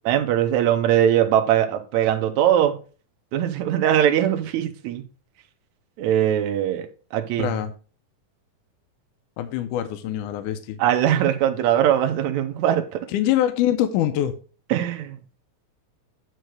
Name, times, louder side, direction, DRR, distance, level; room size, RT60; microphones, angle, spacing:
voice 1, 0.1-2.8 3.3-5.0 6.0-6.9 7.1-7.5 10.8-13.0 14.7-15.2, right 10 dB, 70° right, 5 dB, 1.9 m, -21 dB
voice 2, 7.4-7.7 9.4-10.8 13.1-14.3, left 12 dB, 80° left, 8 dB, 2.0 m, -24 dB
9.2 x 3.2 x 6.4 m, 0.37 s
omnidirectional pair, 4.1 m